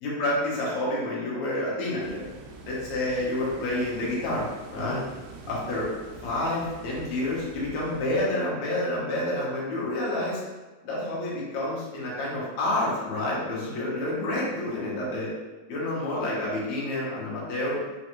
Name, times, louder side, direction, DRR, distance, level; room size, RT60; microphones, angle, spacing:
voice 1, 0.0-2.3 2.7-5.0 5.5-5.9 6.2-10.4 10.8-15.3 15.7-17.8, left 1 dB, 70° left, -6 dB, 2.2 m, -29 dB
sound 1, 2.0-8.2, right 3 dB, 80° right, 1.5 m, -45 dB
5.0 x 2.3 x 3.0 m, 1.2 s
omnidirectional pair, 3.4 m